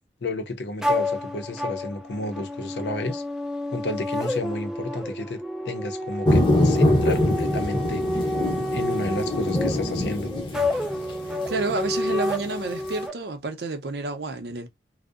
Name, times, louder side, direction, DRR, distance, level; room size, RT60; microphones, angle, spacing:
voice 1, 0.2-3.2 3.7-5.4 5.6-8.2 8.7-10.3, left 2 dB, 75° left, 0.6 m, -31 dB
sound 1, 0.8-13.1, left 1 dB, 5° right, 0.4 m, -29 dB
sound 2, 6.2-12.9, left 1 dB, 30° left, 0.7 m, -24 dB
voice 2, 11.5-14.7, right 3 dB, 65° right, 0.6 m, -30 dB
2.6 x 2.0 x 2.3 m
head